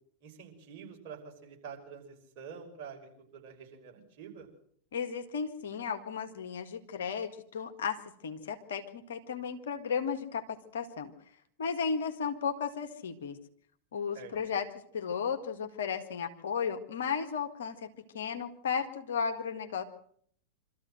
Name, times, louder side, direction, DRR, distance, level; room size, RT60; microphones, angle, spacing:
voice 1, 0.2-4.5 14.1-14.3, right 6 dB, 45° right, 1 dB, 6.0 m, -47 dB
voice 2, 4.9-8.0 8.2-11.1 11.6-13.4 13.9-14.7 14.9-19.8, left 6 dB, 60° left, 8 dB, 1.8 m, -34 dB
25.0 x 14.0 x 7.7 m, 0.63 s
figure-of-eight pair, 90°, 0 cm